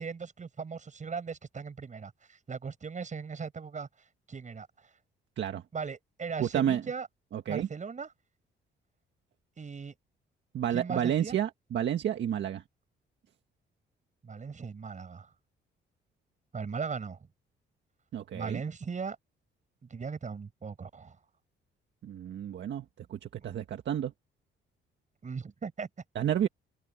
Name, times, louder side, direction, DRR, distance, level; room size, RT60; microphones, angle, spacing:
voice 1, 0.0-3.9 4.3-4.9 5.7-7.1 7.5-8.1 9.6-9.9 10.7-11.4 14.2-15.3 16.5-17.2 18.3-19.2 19.9-21.2 23.4-23.6 25.2-25.9, right 5 dB, 40° right, 7.8 m, -38 dB
voice 2, 6.4-6.8 7.3-7.7 10.5-12.6 18.1-18.6 22.0-22.8 23.1-24.1 26.2-26.5, right 10 dB, 65° right, 1.7 m, -30 dB
cardioid pair, 90°, 20 cm